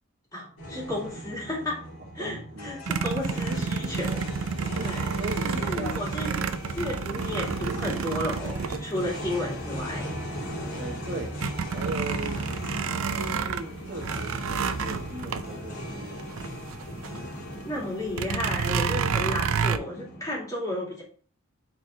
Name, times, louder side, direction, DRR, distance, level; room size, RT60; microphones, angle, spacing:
voice 1, 0.3-1.8 2.1-4.3 4.8-5.0 5.6-6.4 6.7-10.1 17.6-21.0, left 1 dB, 15° left, -4 dB, 2.4 m, -33 dB
sound 1, 0.6-20.3, equal, 85° left, 2.6 m, -37 dB
voice 2, 2.2-2.7 4.7-6.1 7.1-7.3 10.8-11.3 11.7-12.4 13.1-16.2 17.1-17.3, right 2 dB, 45° right, 0 dB, 1.3 m, -38 dB
sound 2, 2.9-9.5 10.1-10.2 10.5-17.2 17.5-17.6 18.1-19.8, right 6 dB, 80° right, 0.5 m, -30 dB
4.6 x 4.3 x 5.3 m, 0.43 s
head